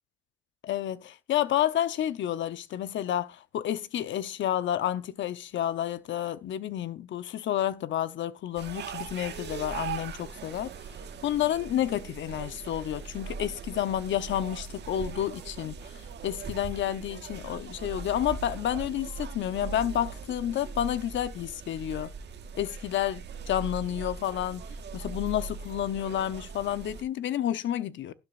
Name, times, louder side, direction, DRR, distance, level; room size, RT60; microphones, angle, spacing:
voice 1, 0.6-10.7 11.2-22.1 22.6-24.6 24.9-28.1, left 11 dB, 70° left, 0.9 m, -30 dB
sound 1, 8.5-27.0, right 5 dB, 60° right, 1.5 m, -40 dB
13.5 x 12.0 x 2.5 m
cardioid pair, 90°, 20 cm